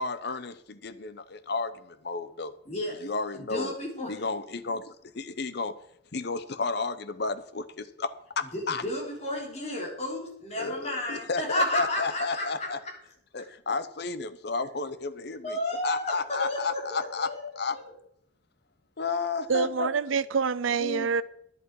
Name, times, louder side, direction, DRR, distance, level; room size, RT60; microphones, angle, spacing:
voice 1, 0.0-2.5 3.0-3.7 4.1-5.7 6.1-8.8 10.5-12.8 13.3-17.8 19.0-19.9 20.8-21.1, left 4 dB, 55° left, 0.8 m, -32 dB
voice 2, 2.7-3.1 3.3-4.1 8.5-12.7 13.7-13.8 15.4-17.8, left 1 dB, 35° left, 3.6 m, -32 dB
voice 3, 19.5-21.2, right 5 dB, 85° right, 0.6 m, -26 dB
11.0 x 10.5 x 4.7 m
head